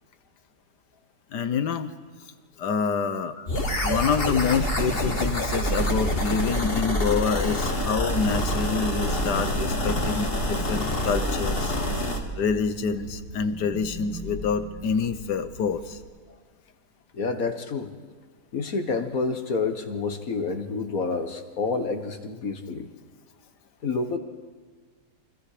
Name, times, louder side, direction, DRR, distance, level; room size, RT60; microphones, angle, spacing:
voice 1, 1.3-1.9 2.6-3.4 3.8-11.8 12.4-16.0, left 6 dB, 80° left, 11 dB, 1.7 m, -27 dB
sound 1, 3.5-12.2, left 1 dB, 35° left, 2.4 m, -26 dB
sound 2, 3.6-16.0, right 1 dB, 70° right, 4.6 m, -40 dB
voice 2, 9.8-10.3 11.6-11.7 16.3-16.4 17.1-17.9 18.5-22.9 23.8-24.2, left 4 dB, 55° left, 7 dB, 1.9 m, -29 dB
28.5 x 25.0 x 5.1 m, 1.5 s
omnidirectional pair, 1.8 m